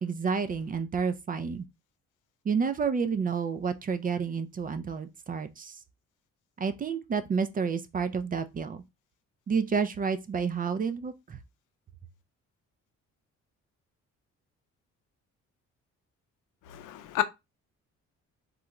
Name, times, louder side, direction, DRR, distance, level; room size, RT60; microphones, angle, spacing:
voice 1, 0.0-1.7 2.4-5.8 6.6-8.8 9.5-11.4, right 5 dB, 30° right, 0.4 m, -30 dB
voice 2, 16.7-17.2, left 13 dB, 85° left, 0.5 m, -30 dB
3.7 x 2.2 x 2.9 m
cardioid pair, 90°, 30 cm